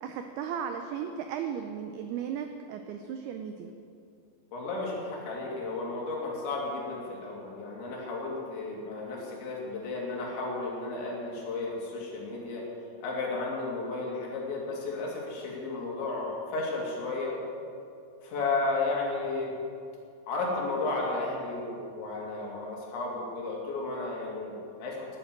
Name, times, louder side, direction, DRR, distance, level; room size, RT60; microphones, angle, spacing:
voice 1, 0.0-3.7, right 8 dB, 90° right, 6 dB, 2.2 m, -36 dB
voice 2, 4.5-12.7 13.0-17.4 18.2-19.5 20.3-25.2, left 3 dB, 75° left, -3 dB, 4.6 m, -33 dB
12.0 x 8.6 x 8.8 m, 2.5 s
omnidirectional pair, 5.3 m